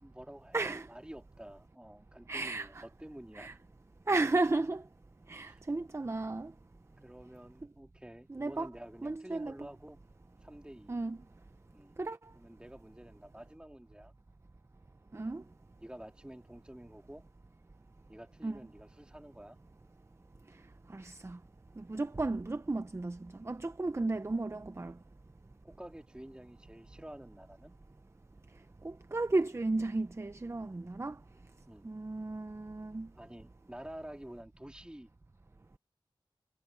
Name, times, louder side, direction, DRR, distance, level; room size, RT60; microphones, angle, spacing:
voice 1, 0.0-3.6 5.4-5.6 7.0-10.0 10.4-11.0 11.7-11.9 12.3-14.1 15.8-17.2 18.1-19.6 25.6-27.7 31.7-31.8 33.2-35.1, right 1 dB, 10° right, 2.8 m, -50 dB
voice 2, 0.5-0.9 2.3-2.8 3.4-3.5 4.1-4.8 5.3-6.5 8.3-8.7 9.0-9.5 10.9-11.2 12.0-12.2 15.1-15.4 18.4-18.6 20.9-21.4 21.8-24.9 28.8-31.2 31.8-33.1, right 2 dB, 30° right, 0.7 m, -34 dB
wide cardioid pair, 75°, 9 cm